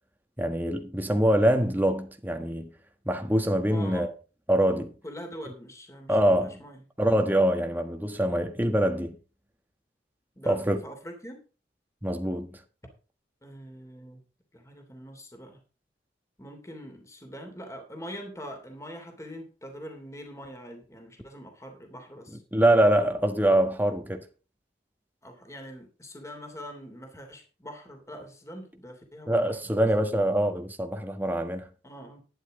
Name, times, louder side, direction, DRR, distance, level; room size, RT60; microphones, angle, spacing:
voice 1, 0.4-2.7 3.0-4.1 4.5-4.9 6.1-6.6 7.0-9.2 10.4-10.8 12.0-12.6 22.3-24.2 29.3-31.7, right 1 dB, 10° right, 1.4 m, -24 dB
voice 2, 3.7-4.1 5.0-6.8 10.4-10.6 10.8-11.4 13.4-14.2 14.5-15.6 16.4-22.4 25.2-29.7 31.8-32.2, equal, 15° left, 3.0 m, -43 dB
12.0 x 10.5 x 3.8 m
head